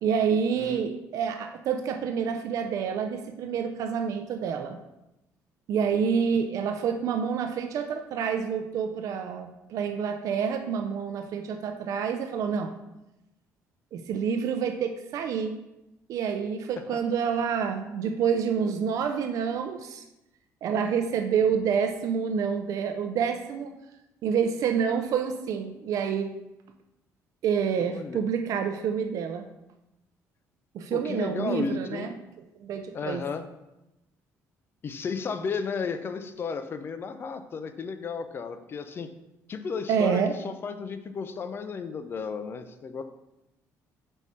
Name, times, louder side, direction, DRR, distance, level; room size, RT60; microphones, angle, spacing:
voice 1, 0.0-4.8 5.7-12.7 13.9-15.6 16.1-20.0 20.6-23.7 24.2-26.3 27.4-29.4 30.7-32.1 32.6-33.2 39.9-40.3, right 7 dB, 65° right, 6 dB, 0.5 m, -28 dB
voice 2, 27.8-28.2 30.9-32.1 32.9-33.4 34.8-39.1 39.5-43.0, left 5 dB, 40° left, 9 dB, 0.6 m, -33 dB
5.4 x 4.8 x 4.2 m, 0.94 s
cardioid pair, 115°, 6 cm